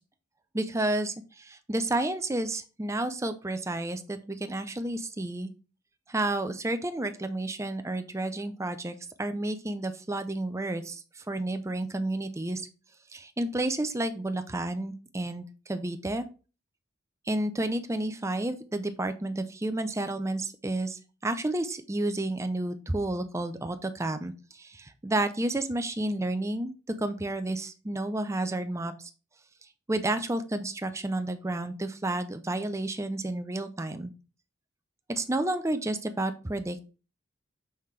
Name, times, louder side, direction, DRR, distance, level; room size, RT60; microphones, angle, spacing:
voice 1, 0.5-5.5 6.1-12.6 13.1-16.3 17.3-28.9 29.9-34.1 35.1-36.8, right 2 dB, 15° right, 9 dB, 0.5 m, -31 dB
5.8 x 5.5 x 3.3 m, 0.34 s
head